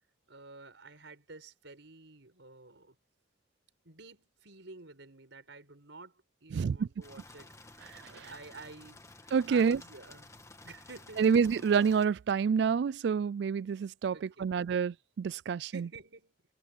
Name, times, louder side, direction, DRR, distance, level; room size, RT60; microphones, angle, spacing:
voice 1, 0.3-2.9 3.8-9.2 9.5-10.4 10.6-11.2 14.1-14.5 15.6-16.3, right 3 dB, 85° right, 4.9 m, -50 dB
voice 2, 6.5-6.9 9.3-9.8 11.2-15.8, right 6 dB, 65° right, 0.3 m, -28 dB
sound 1, 7.0-12.1, left 2 dB, 15° left, 1.7 m, -53 dB
head